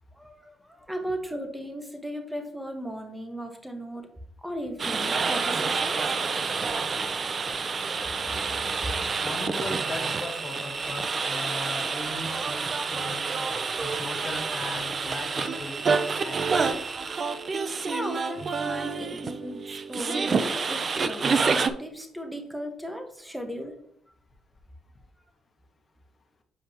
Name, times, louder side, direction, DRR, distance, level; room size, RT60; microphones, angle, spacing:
voice 1, 0.2-4.1 4.4-6.1 17.9-23.7, equal, 5° right, 4 dB, 1.4 m, -36 dB
sound 1, 4.8-21.7, right 4 dB, 40° right, 0.5 m, -28 dB
voice 2, 9.1-13.2 13.8-15.8 16.2-17.0, left 2 dB, 35° left, 4 dB, 1.5 m, -38 dB
7.8 x 5.0 x 3.0 m, 0.68 s
cardioid pair, 90°, 0 cm